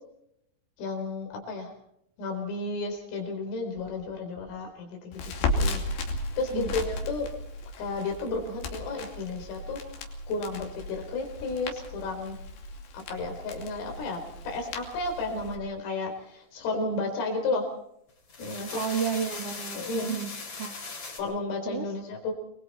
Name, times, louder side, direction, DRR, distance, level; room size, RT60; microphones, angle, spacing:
voice 1, 0.8-1.7 2.2-5.8 6.4-7.3 7.8-9.8 10.3-12.4 12.9-14.2 14.5-17.7 18.4-18.8 19.7-20.2 21.2-22.3, left 3 dB, 85° left, 3 dB, 7.1 m, -32 dB
Crackle, 5.1-15.6, left 2 dB, 65° left, 4.7 m, -35 dB
sound 1, 18.1-21.2, left 4 dB, 30° left, 4.4 m, -39 dB
voice 2, 18.7-20.8 21.6-21.9, right 7 dB, 60° right, 3 dB, 1.6 m, -32 dB
28.5 x 21.5 x 4.3 m, 0.76 s
omnidirectional pair, 5.8 m